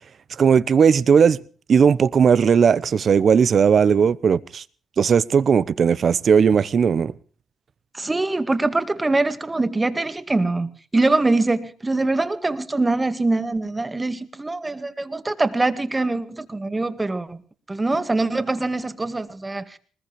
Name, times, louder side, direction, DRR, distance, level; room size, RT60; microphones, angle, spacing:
voice 1, 0.4-1.4 1.7-4.6 5.0-7.1, right 6 dB, 50° right, 0.8 m, -17 dB
voice 2, 7.9-17.4 17.7-19.8, right 2 dB, 20° right, 1.9 m, -23 dB
20.5 x 20.0 x 3.2 m
cardioid pair, 90°, 0 cm